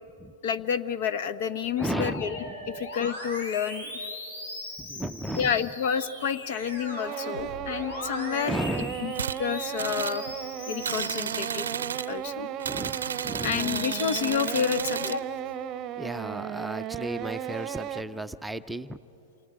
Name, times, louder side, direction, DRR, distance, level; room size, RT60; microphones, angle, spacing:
voice 1, 0.4-2.4 2.7-4.0 5.3-9.1 9.4-10.3 10.7-11.7 12.1-12.5 13.4-15.2, left 7 dB, 60° left, 13 dB, 1.1 m, -29 dB
Musical instrument, 1.8-12.2 12.6-14.2, left 1 dB, 80° left, 5.2 m, -40 dB
voice 2, 1.8-2.7 4.8-5.6 8.4-9.1 12.6-13.0 13.2-13.8 16.0-19.0, right 1 dB, 5° right, 8 dB, 0.6 m, -34 dB
sound 1, 6.5-18.0, right 11 dB, 35° right, 0.8 m, -36 dB
sound 2, 9.1-9.4 9.8-10.2 10.8-12.1 12.6-15.2, right 7 dB, 85° right, 0.6 m, -33 dB
28.5 x 28.0 x 5.1 m, 2.8 s
hypercardioid pair, 105°, 0 cm